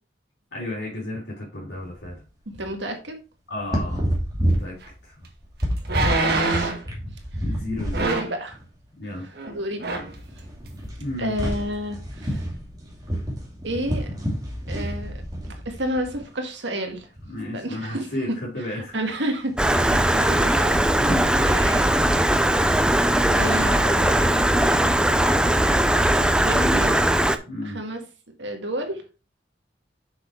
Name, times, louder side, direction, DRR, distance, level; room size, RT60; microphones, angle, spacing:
voice 1, 0.5-2.2 3.5-4.0 4.5-4.8 5.0-5.2 7.4-8.1 9.0-9.2 11.0-11.3 17.2-19.0 20.9-21.2 26.8-26.9 27.5-27.8, left 1 dB, 65° left, -5 dB, 3.4 m, -32 dB
sound 1, 1.8-2.2 2.5-2.7 3.6-8.1 8.5-8.6 9.5-9.6 9.8-16.2 16.9-17.3 19.4-20.6, equal, 20° right, 2.6 m, -29 dB
voice 2, 2.5-3.2 6.4-6.8 7.3-7.4 8.0-8.6 9.0-10.0 11.2-12.5 13.6-14.1 14.7-17.1 17.5-18.1 18.7-21.1 21.4-22.2 23.3-24.2 26.5-26.9 27.6-28.0 28.4-29.0, right 1 dB, 80° right, 4 dB, 1.8 m, -31 dB
sound 2, 4.8-4.9 5.8-6.9 7.9-8.4 9.4-9.5 9.8-10.1 10.7-10.8, right 3 dB, 60° right, 1.8 m, -24 dB
Stream, 19.6-27.4, right 1 dB, 5° right, 0.5 m, -19 dB
6.6 x 6.1 x 4.6 m, 0.33 s
head